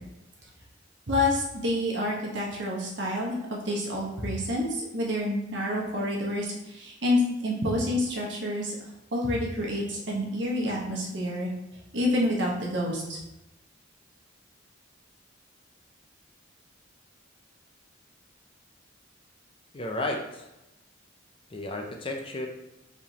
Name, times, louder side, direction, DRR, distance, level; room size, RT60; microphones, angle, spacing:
voice 1, 1.1-8.7 9.1-11.5 11.9-13.2, left 1 dB, 60° right, -3 dB, 1.2 m, -28 dB
voice 2, 19.7-20.5 21.5-22.5, left 1 dB, 25° left, 2 dB, 0.5 m, -32 dB
4.6 x 3.4 x 2.9 m, 0.96 s
head